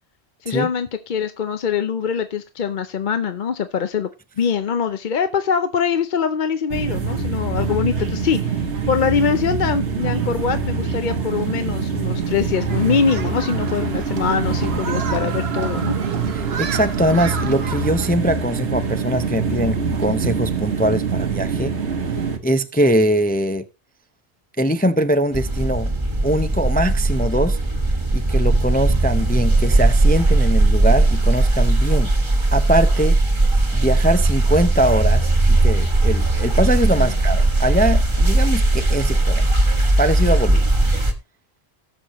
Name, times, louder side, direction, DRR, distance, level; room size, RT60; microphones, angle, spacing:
voice 1, 0.4-4.1 4.4-16.0 37.0-37.1, left 6 dB, 50° left, 0.8 m, -23 dB
sound 1, 6.7-22.4, right 5 dB, 85° right, 1.7 m, -24 dB
Human group actions, 12.7-18.1, right 6 dB, 70° right, 1.2 m, -32 dB
voice 2, 16.3-21.7 22.4-23.6 24.6-25.9 26.2-27.6 28.1-32.1 32.5-33.2 33.7-39.5 40.0-40.6, equal, 15° left, 0.4 m, -22 dB
sound 2, 25.3-41.1, right 2 dB, 25° right, 1.4 m, -18 dB
17.5 x 6.5 x 3.0 m
omnidirectional pair, 1.1 m